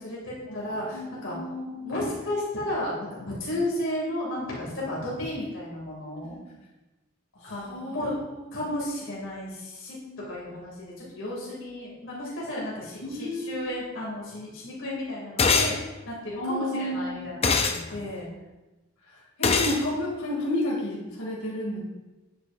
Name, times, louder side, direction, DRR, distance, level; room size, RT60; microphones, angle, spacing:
voice 1, 0.0-1.5 1.8-6.4 7.4-8.1 8.5-10.0 10.3-18.3, left 1 dB, 60° left, -6 dB, 2.7 m, -33 dB
voice 2, 0.9-2.1 6.2-6.4 7.4-8.0 10.1-10.2 13.0-13.7 16.4-17.3 19.4-21.8, left 1 dB, 90° left, -4 dB, 2.7 m, -31 dB
sound 1, 15.4-15.8 17.4-17.8 19.4-19.8, left 4 dB, 30° left, 0.6 m, -22 dB
9.6 x 8.5 x 2.6 m, 1.1 s
head